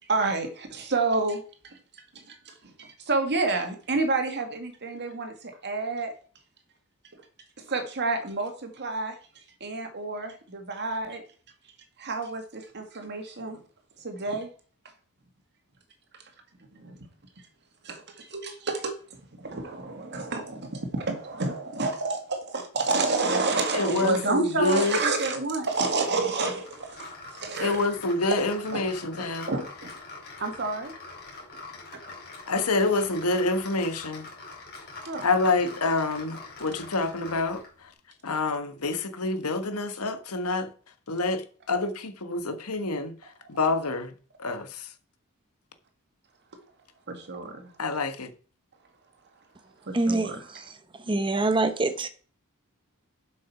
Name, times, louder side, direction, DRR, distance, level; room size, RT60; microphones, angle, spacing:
voice 1, 0.0-6.1 7.1-7.2 7.6-11.2 12.0-13.6 14.0-14.5 16.7-17.1 17.8-19.0 19.3-27.9 28.7-29.9 30.4-30.9 32.0-32.1 35.0-35.3 46.5-46.6 47.1-47.7 49.8-50.5, right 3 dB, 50° right, 2.0 m, -30 dB
voice 2, 23.7-25.0 27.6-29.5 32.5-34.3 35.2-37.9 38.2-40.7 41.1-44.1 44.4-44.9 47.8-48.3, left 3 dB, 85° left, 1.4 m, -27 dB
sound 1, 26.7-37.8, left 3 dB, 45° left, 3.3 m, -44 dB
voice 3, 49.9-50.6 51.1-52.1, right 2 dB, 20° right, 0.8 m, -25 dB
7.9 x 6.3 x 5.8 m
head